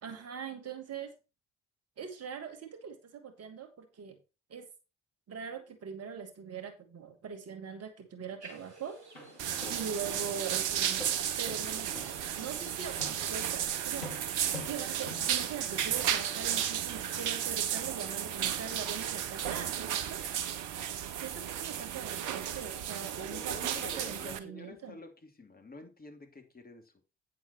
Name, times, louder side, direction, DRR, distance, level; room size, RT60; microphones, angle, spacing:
voice 1, 0.0-1.1 2.0-4.2 4.5-4.7 5.3-9.0 9.7-11.1 11.4-14.1 14.6-20.2 21.2-25.0, right 6 dB, 50° right, 2.4 m, -42 dB
sound 1, 8.4-15.4, right 4 dB, 85° right, 1.8 m, -53 dB
Walk footsteps, 8.9-16.1, left 2 dB, 90° left, 1.8 m, -47 dB
sound 2, 9.4-24.4, right 10 dB, 65° right, 1.0 m, -34 dB
voice 2, 23.3-27.0, left 3 dB, 25° left, 2.9 m, -49 dB
8.7 x 7.2 x 4.5 m
figure-of-eight pair, 40°, 33 cm